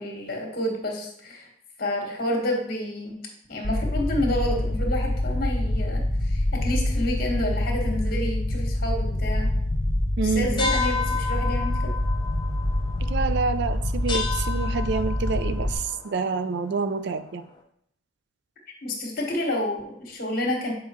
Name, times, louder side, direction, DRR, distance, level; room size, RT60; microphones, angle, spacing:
voice 1, 0.0-1.5 1.8-3.2 3.5-9.5 10.2-11.9 18.8-20.7, left 1 dB, 50° left, 0 dB, 1.5 m, -29 dB
sound 1, 3.6-15.7, left 1 dB, 75° left, 0.9 m, -26 dB
voice 2, 10.2-10.7 13.0-17.4, right 4 dB, 60° right, 12 dB, 0.4 m, -27 dB
sound 2, 10.6-17.4, left 4 dB, 25° left, 0.6 m, -33 dB
7.2 x 4.6 x 3.0 m, 0.70 s
head